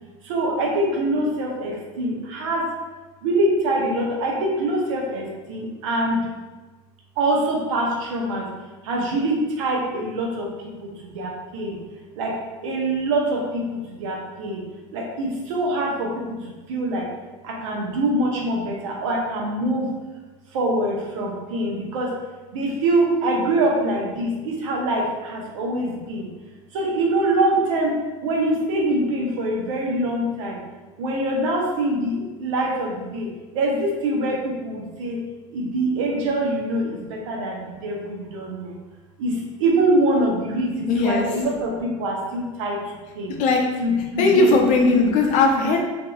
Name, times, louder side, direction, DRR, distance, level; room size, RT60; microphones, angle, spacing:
voice 1, 0.2-2.6 3.2-6.2 7.2-8.5 8.8-10.5 10.8-11.8 12.2-12.4 12.6-14.6 14.9-17.0 17.4-19.9 20.5-22.1 22.5-26.3 26.7-27.9 28.2-30.6 31.0-33.3 33.5-35.2 35.5-38.7 39.2-42.8 43.1-43.4 43.8-44.6, right 1 dB, 90° right, -1 dB, 0.7 m, -24 dB
voice 2, 40.9-41.3 43.4-43.7 44.2-45.8, left 3 dB, 55° left, 2 dB, 0.5 m, -18 dB
2.8 x 2.5 x 2.3 m, 1.2 s
supercardioid pair, 120°, 16 cm